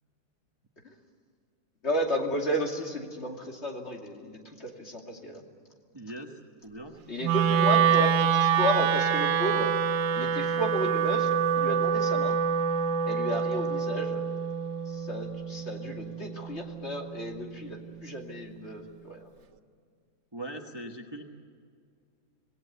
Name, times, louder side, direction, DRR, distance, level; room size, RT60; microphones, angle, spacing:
voice 1, 1.8-5.4 7.1-9.7 10.1-12.4 13.0-14.2 14.9-19.2, equal, 40° left, 1 dB, 2.9 m, -33 dB
voice 2, 5.9-7.0 20.3-21.2, right 1 dB, 15° right, 3 dB, 1.2 m, -41 dB
Wind instrument woodwind instrument, 7.2-17.4, right 7 dB, 90° right, 1.5 m, -26 dB
27.0 x 18.5 x 8.2 m, 2.1 s
omnidirectional pair, 1.7 m